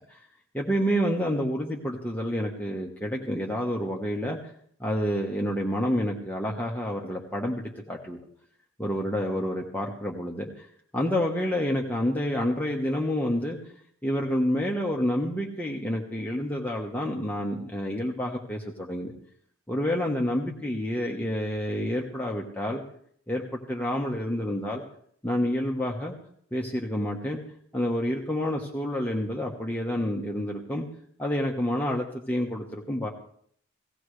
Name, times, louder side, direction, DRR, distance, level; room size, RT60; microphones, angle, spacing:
voice 1, 0.5-4.4 4.8-8.2 8.8-10.7 10.9-13.6 14.0-19.1 19.7-22.8 23.3-24.8 25.2-26.2 26.5-27.4 27.7-30.9 31.2-33.1, equal, 10° left, -1 dB, 1.3 m, -28 dB
18.0 x 16.5 x 3.3 m, 0.63 s
head